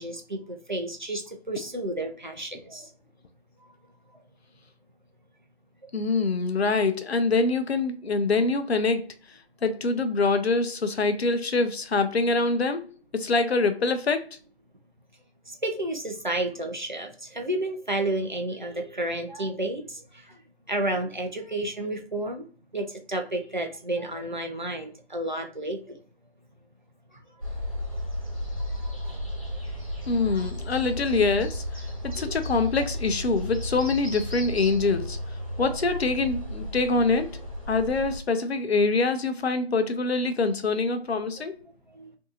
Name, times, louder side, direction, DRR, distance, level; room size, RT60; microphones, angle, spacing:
voice 1, 0.0-2.9 15.5-20.4 20.7-22.4 22.7-26.0 27.1-27.2 28.5-29.2 30.3-30.5 32.1-32.4 35.6-35.7 41.9-42.1, right 1 dB, 45° right, 0.5 m, -31 dB
voice 2, 5.9-9.0 9.6-12.9 13.1-14.2 30.1-31.6 32.0-35.2 35.6-37.3 37.7-41.5, left 3 dB, 75° left, 0.6 m, -24 dB
Spring Forest Midmorning, 27.4-38.2, equal, 35° left, 0.6 m, -34 dB
2.7 x 2.7 x 2.5 m
figure-of-eight pair, 175°, 32 cm